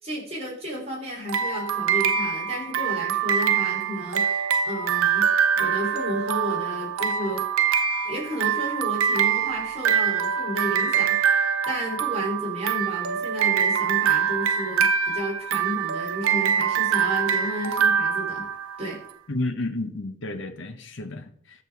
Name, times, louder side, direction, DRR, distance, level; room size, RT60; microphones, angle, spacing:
voice 1, 0.0-5.3 5.6-7.4 8.0-18.5 18.8-19.0, equal, 30° right, 3.1 m, -32 dB
sound 1, 1.3-19.0, right 7 dB, 85° right, 0.5 m, -24 dB
voice 2, 19.3-21.6, left 2 dB, 65° left, 1.0 m, -31 dB
13.5 x 5.2 x 4.6 m
head